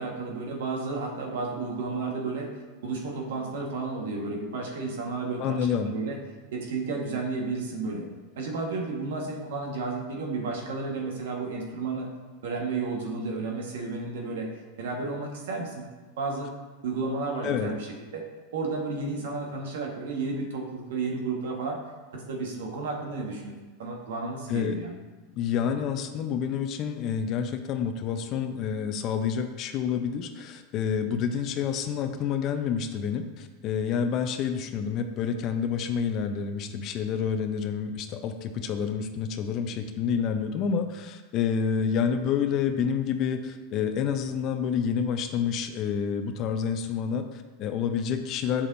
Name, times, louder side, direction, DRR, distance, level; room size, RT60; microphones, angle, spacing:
voice 1, 0.0-2.5 2.8-6.2 6.5-8.1 8.4-12.1 12.4-14.5 14.8-15.9 16.2-16.5 16.8-18.2 18.5-21.8 22.1-24.9, right 3 dB, 75° right, 1 dB, 1.4 m, -32 dB
voice 2, 5.4-5.9 17.4-17.7 24.5-24.8 25.3-48.7, left 7 dB, 45° left, 7 dB, 0.7 m, -28 dB
7.1 x 6.7 x 2.7 m, 1.2 s
hypercardioid pair, 110°, 0 cm